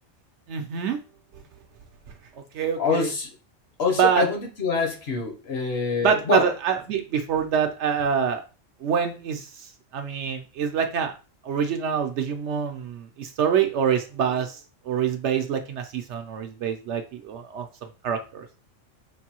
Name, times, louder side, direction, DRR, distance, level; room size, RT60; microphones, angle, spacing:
voice 1, 0.5-1.0 2.5-3.1 4.0-4.2 6.0-8.4 8.8-11.1 11.4-17.7 18.0-18.5, right 7 dB, 70° right, 6 dB, 0.8 m, -25 dB
voice 2, 2.8-3.3 3.8-6.5, left 4 dB, 55° left, 2 dB, 1.0 m, -25 dB
5.2 x 2.6 x 2.9 m, 0.34 s
omnidirectional pair, 1.4 m